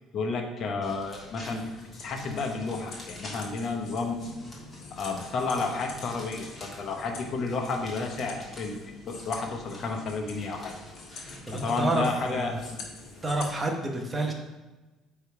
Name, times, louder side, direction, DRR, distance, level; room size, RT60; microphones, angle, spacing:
voice 1, 0.1-1.6 2.0-4.3 4.9-8.8 9.1-10.7 11.6-12.8, left 3 dB, 40° left, 2 dB, 0.9 m, -31 dB
sound 1, 0.8-13.4, left 1 dB, 15° left, 1.5 m, -48 dB
sound 2, 1.2-13.5, left 3 dB, 55° left, 1.3 m, -47 dB
voice 2, 11.5-12.6 13.2-14.3, right 2 dB, 15° right, 1 dB, 0.9 m, -29 dB
9.0 x 3.5 x 4.8 m, 1.1 s
cardioid pair, 175°, 0 cm